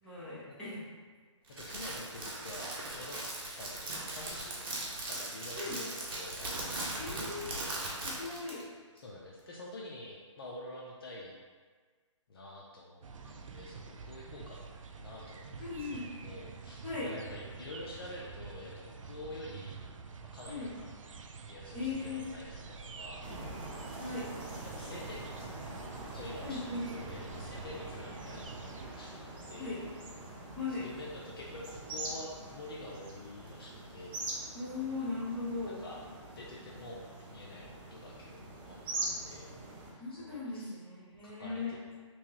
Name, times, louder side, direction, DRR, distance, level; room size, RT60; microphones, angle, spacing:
voice 1, 0.0-0.8 5.5-5.8 7.0-7.5 8.0-8.6 15.6-16.0 16.8-17.1 20.5-20.7 21.7-22.2 24.0-24.3 26.4-26.8 29.6-29.8 30.6-30.9 34.5-35.8 38.9-39.0 40.0-41.8, left 3 dB, 5° left, -12 dB, 1.1 m, -38 dB
voice 2, 1.5-3.2 3.6-4.6 5.0-7.4 8.9-11.4 12.3-13.0 13.3-14.6 15.0-19.8 20.3-20.9 21.5-23.3 24.1-25.5 26.1-28.6 28.9-29.1 29.5-29.9 30.7-34.2 35.6-36.0 36.4-37.0 37.3-38.3 38.6-38.9 39.2-39.5 39.9-40.8 41.2-41.8, left 1 dB, 50° left, -4 dB, 0.5 m, -47 dB
Crackle, 1.5-8.6, right 2 dB, 45° right, 0.9 m, -39 dB
sound 1, 13.0-28.9, right 5 dB, 80° right, 0.4 m, -47 dB
sound 2, 23.2-39.9, right 2 dB, 20° right, 0.5 m, -44 dB
3.3 x 3.0 x 3.1 m, 1.5 s
hypercardioid pair, 150°, 16 cm